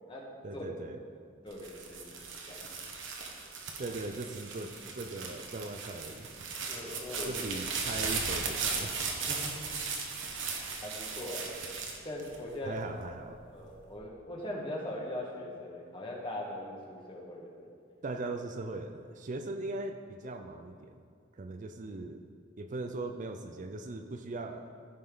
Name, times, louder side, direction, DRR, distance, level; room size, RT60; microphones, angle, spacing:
voice 1, 0.4-1.0 3.8-6.3 7.2-9.0 12.6-13.4 18.0-21.0 21.3-22.2 22.6-24.7, right 2 dB, 40° right, 6 dB, 0.5 m, -39 dB
voice 2, 1.4-2.1 2.5-2.6 3.8-3.9 6.7-7.4 9.3-9.5 10.8-11.5 12.0-12.8 13.5-17.7, left 1 dB, 25° left, -3 dB, 1.6 m, -40 dB
sound 1, 1.5-12.9 13.4-14.0, right 5 dB, 75° right, 1.2 m, -37 dB
15.0 x 5.4 x 3.9 m, 2.2 s
head